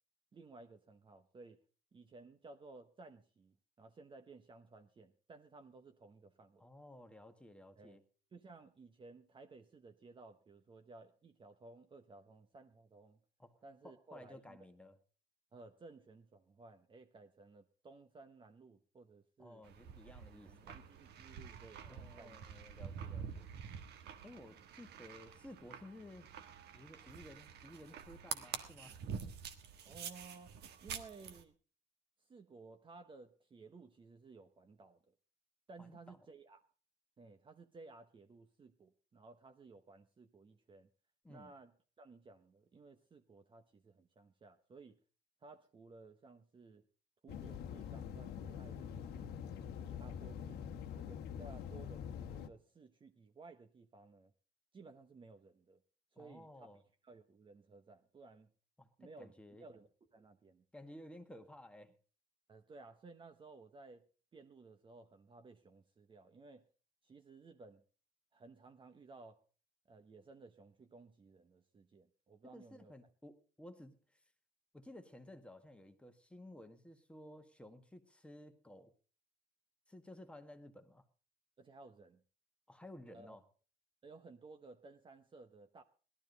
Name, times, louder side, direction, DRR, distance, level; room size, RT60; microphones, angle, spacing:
voice 1, 0.3-1.6 1.9-6.6 7.8-8.0 8.3-13.2 13.6-14.6 15.5-19.6 20.5-22.4 29.8-31.6 32.3-35.1 35.7-36.6 37.2-40.9 41.3-45.0 45.4-46.8 47.2-49.3 49.6-50.6 50.9-54.3 54.7-55.8 56.1-56.7 57.0-58.5 59.0-59.3 59.6-60.6 62.5-64.0 64.3-66.7 67.0-67.8 68.3-69.4 69.9-72.9 81.6-82.2 83.1-83.4 84.0-85.8, right 3 dB, 30° right, 7 dB, 0.9 m, -57 dB
voice 2, 6.6-8.0 13.4-13.5 13.8-15.0 19.4-20.8 21.8-23.5 24.2-26.3 26.7-29.0 35.8-36.2 41.2-41.5 56.2-56.8 58.8-59.7 60.7-61.9 72.5-74.2 74.7-78.9 79.9-81.0 82.7-83.4, left 1 dB, 5° left, 6 dB, 1.6 m, -55 dB
sound 1, 19.6-31.4, right 7 dB, 75° right, 1.5 m, -48 dB
sound 2, 47.3-52.5, left 8 dB, 75° left, 1.2 m, -45 dB
17.5 x 12.5 x 4.0 m, 0.37 s
cardioid pair, 110°, 17 cm